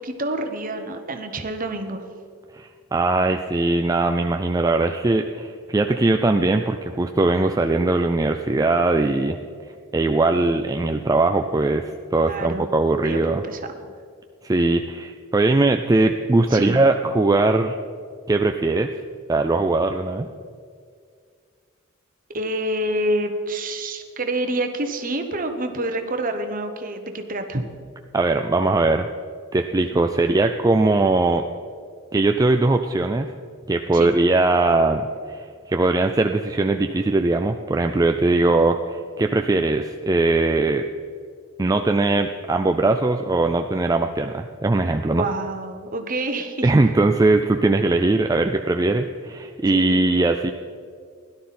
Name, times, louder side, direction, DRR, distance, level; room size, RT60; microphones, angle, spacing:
voice 1, 0.0-2.0 12.3-12.6 13.0-13.9 16.5-16.8 22.3-27.6 29.9-30.0 33.9-34.2 45.1-46.7 49.7-50.0, right 1 dB, 40° right, 6 dB, 1.1 m, -27 dB
voice 2, 2.5-9.4 9.9-13.4 14.4-17.8 18.3-18.9 19.3-20.3 28.1-29.1 29.5-31.4 32.1-33.3 33.7-40.8 41.6-45.2 46.6-50.5, right 2 dB, 15° right, 5 dB, 0.4 m, -20 dB
17.0 x 11.5 x 4.3 m, 2.1 s
head